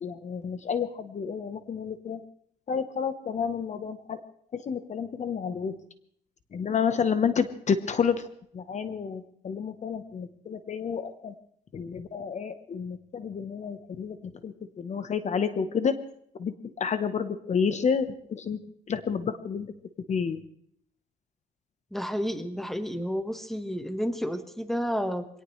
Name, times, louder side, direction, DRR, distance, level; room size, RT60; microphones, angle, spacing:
voice 1, 0.0-2.2 2.7-4.2 4.5-5.7 6.5-8.2 8.5-11.3 11.7-14.2 14.4-16.0 16.4-18.6 18.9-19.7 20.1-20.4, left 6 dB, 45° left, 11 dB, 1.0 m, -30 dB
voice 2, 21.9-25.3, equal, ahead, 9 dB, 1.4 m, -31 dB
24.5 x 18.0 x 3.2 m, 0.67 s
cardioid pair, 110°, 17 cm